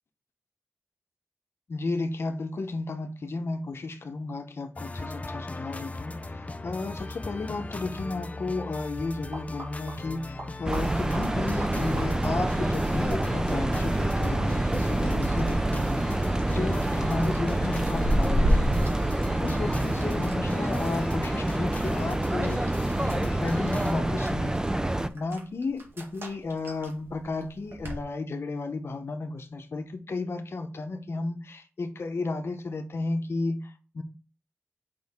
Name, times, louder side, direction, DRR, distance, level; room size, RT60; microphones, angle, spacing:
voice 1, 1.7-6.4 6.6-19.0 19.4-22.6 22.9-24.6 25.1-34.0, left 3 dB, 65° left, 0.8 m, -33 dB
sound 1, 4.8-23.9, left 2 dB, 30° left, 0.6 m, -38 dB
sound 2, 8.9-28.0, equal, 60° right, 1.8 m, -35 dB
sound 3, 10.7-25.1, right 1 dB, 15° right, 0.5 m, -27 dB
6.2 x 5.2 x 3.6 m
wide cardioid pair, 95°, 5 cm